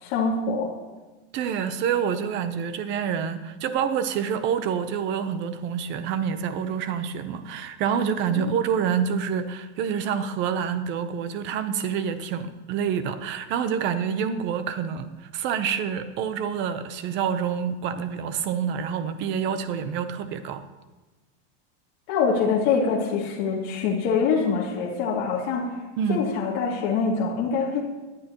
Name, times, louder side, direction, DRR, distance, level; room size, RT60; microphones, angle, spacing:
voice 1, 0.0-0.7 8.4-8.5 22.1-25.7 26.1-27.8, left 5 dB, 45° left, -4 dB, 2.6 m, -24 dB
voice 2, 1.3-20.6 26.0-26.3, right 7 dB, 30° right, 11 dB, 0.8 m, -27 dB
18.5 x 11.0 x 3.0 m, 1.2 s
supercardioid pair, 165°, 37 cm